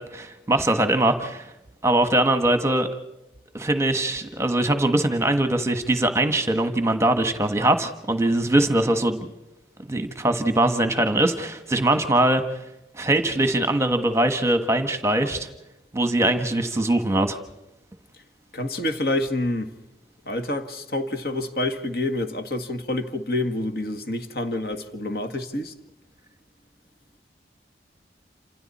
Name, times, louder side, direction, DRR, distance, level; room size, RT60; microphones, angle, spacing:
voice 1, 0.0-1.5 1.8-2.9 3.5-9.3 9.9-12.4 13.0-15.5 15.9-17.4, right 1 dB, 15° right, 1.3 m, -22 dB
voice 2, 18.5-19.7 20.3-25.7, left 1 dB, 60° left, 1.8 m, -27 dB
28.5 x 26.5 x 4.3 m
head